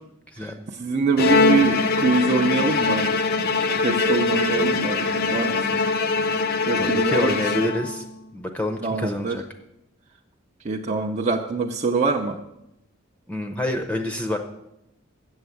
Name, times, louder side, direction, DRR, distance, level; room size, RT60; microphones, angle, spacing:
voice 1, 0.3-0.6 6.8-8.0 8.3-9.4 13.3-14.4, left 1 dB, 5° left, 5 dB, 0.7 m, -27 dB
voice 2, 0.8-3.1 3.8-5.0 5.3-5.8 6.7-7.3 8.8-9.4 10.6-12.4, right 4 dB, 35° right, 1 dB, 0.6 m, -24 dB
Bowed string instrument, 1.2-8.1, left 4 dB, 50° left, 0.6 m, -22 dB
7.8 x 7.2 x 7.9 m, 0.85 s
head